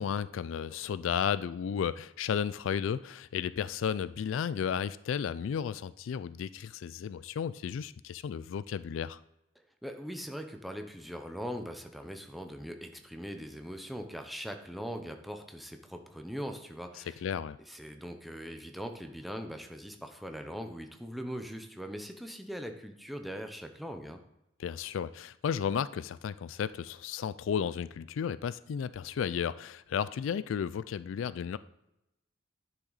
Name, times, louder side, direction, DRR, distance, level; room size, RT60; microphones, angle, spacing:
voice 1, 0.0-9.2 17.2-17.6 24.6-31.6, left 7 dB, 75° left, 16 dB, 0.3 m, -33 dB
voice 2, 9.8-17.2 17.6-24.2, equal, ahead, 5 dB, 0.7 m, -41 dB
10.0 x 6.2 x 4.0 m, 0.86 s
head